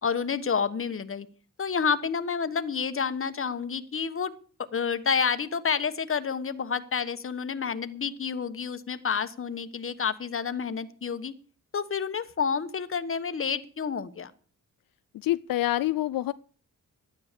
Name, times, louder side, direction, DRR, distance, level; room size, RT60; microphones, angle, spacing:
voice 1, 0.0-1.3 1.6-4.3 4.7-11.3 11.7-14.3, left 6 dB, 40° left, 11 dB, 1.2 m, -29 dB
voice 2, 15.1-16.3, left 15 dB, 85° left, 15 dB, 0.5 m, -26 dB
12.5 x 9.9 x 6.8 m, 0.42 s
cardioid pair, 95°, 33 cm